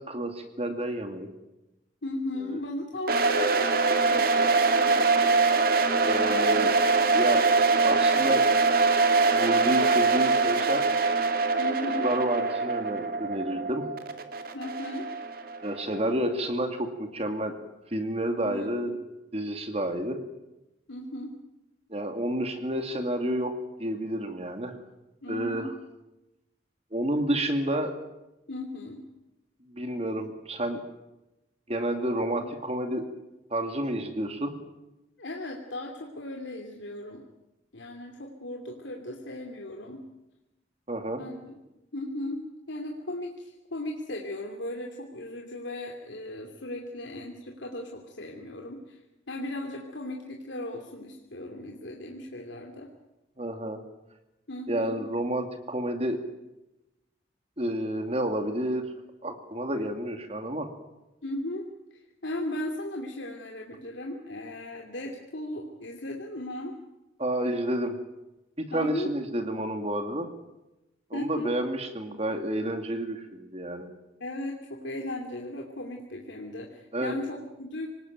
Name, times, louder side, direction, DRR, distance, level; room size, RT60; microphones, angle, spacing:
voice 1, 0.1-1.3 2.4-2.6 6.0-6.8 7.1-7.5 7.8-8.5 9.3-10.9 12.0-13.8 15.6-17.5 17.9-18.9 19.3-20.2 21.9-24.7 25.3-25.7 26.9-28.0 29.7-30.8 31.7-33.0 33.5-34.5 40.9-41.2 53.4-53.8 54.7-56.2 57.6-58.9 59.2-60.7 67.2-68.0 68.6-70.3 71.1-73.9 76.9-77.1, right 1 dB, 35° right, 6 dB, 2.3 m, -30 dB
voice 2, 2.0-5.0 11.6-12.1 14.5-15.1 18.4-18.7 20.9-21.3 25.2-25.7 28.5-29.0 35.2-37.2 37.7-40.1 41.2-41.6 41.9-49.0 49.3-52.9 54.5-55.0 61.2-66.8 68.7-69.1 71.1-71.5 74.2-77.9, left 1 dB, 75° left, 1 dB, 2.7 m, -37 dB
sound 1, 3.1-15.9, right 4 dB, 50° right, 2.4 m, -23 dB
26.0 x 19.5 x 9.2 m, 0.97 s
head